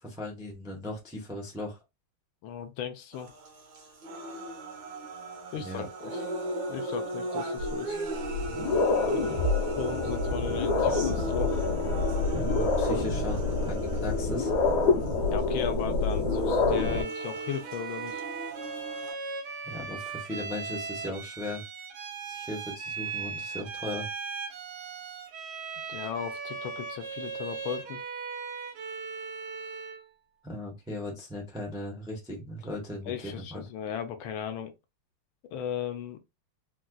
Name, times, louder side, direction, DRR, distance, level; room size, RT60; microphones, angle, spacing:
voice 1, 0.0-1.8 5.6-5.9 12.3-14.5 19.6-21.6 22.3-24.1 30.4-33.6, left 1 dB, 5° right, 0.4 m, -37 dB
voice 2, 2.4-3.3 5.5-6.2 6.7-8.0 9.0-9.5 9.8-11.6 12.9-13.0 15.3-18.2 25.9-28.0 33.1-34.7 35.5-36.2, left 8 dB, 75° left, 1.4 m, -36 dB
sound 1, 3.1-19.1, right 1 dB, 55° right, 1.3 m, -38 dB
sound 2, 7.6-7.7 8.2-17.0, left 3 dB, 60° left, 1.3 m, -27 dB
Bowed string instrument, 16.7-30.1, right 5 dB, 85° right, 1.7 m, -38 dB
4.2 x 2.4 x 2.2 m
omnidirectional pair, 2.3 m